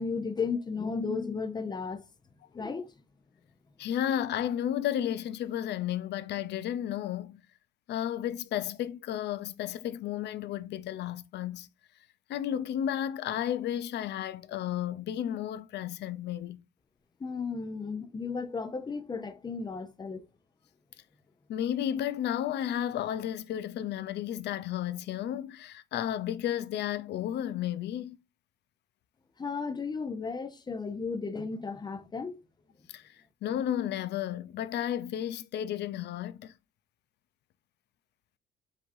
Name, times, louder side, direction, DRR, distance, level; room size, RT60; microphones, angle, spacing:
voice 1, 0.0-2.1 2.5-2.9 17.2-20.2 29.4-32.4, left 4 dB, 20° left, 0.7 m, -34 dB
voice 2, 3.8-7.4 7.9-11.7 12.3-16.6 21.5-28.2 32.9-33.2 33.4-36.5, left 11 dB, 60° left, 0.5 m, -33 dB
5.1 x 3.9 x 2.7 m
cardioid pair, 105°, 21 cm